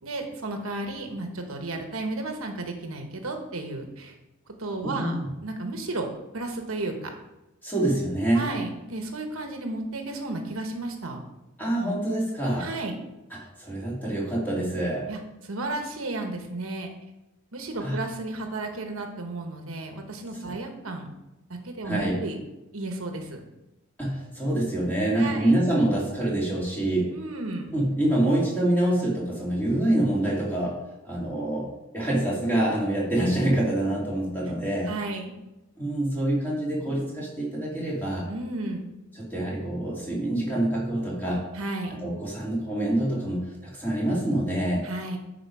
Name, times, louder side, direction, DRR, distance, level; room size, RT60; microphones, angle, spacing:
voice 1, 0.0-4.1 4.5-5.2 5.4-6.1 6.3-7.1 8.3-11.2 12.6-13.0 15.1-16.9 17.5-21.1 21.6-22.4 22.7-23.4 25.2-25.5 27.1-27.7 34.8-35.3 38.3-38.9 41.5-42.0 44.8-45.2, right 2 dB, 70° right, 4 dB, 1.2 m, -33 dB
voice 2, 4.8-5.3 7.6-8.5 11.6-12.7 13.6-15.1 17.8-18.0 20.4-20.6 21.8-22.2 24.0-27.1 27.7-30.8 31.0-31.7 31.9-34.9 35.8-38.3 39.2-41.5 42.0-44.9, right 1 dB, 10° left, -6 dB, 2.9 m, -26 dB
11.0 x 4.8 x 4.8 m, 0.97 s
head